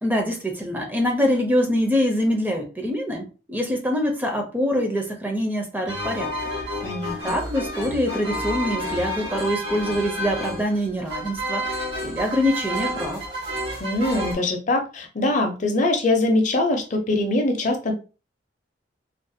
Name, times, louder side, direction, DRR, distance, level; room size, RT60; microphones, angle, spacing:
voice 1, 0.0-6.3 7.2-13.2, equal, 10° right, 2 dB, 0.4 m, -24 dB
sound 1, 5.9-14.3, equal, 70° right, 1.2 m, -30 dB
voice 2, 6.8-7.3 13.8-17.9, left 2 dB, 45° left, 4 dB, 0.5 m, -23 dB
2.4 x 2.1 x 2.6 m, 0.33 s
head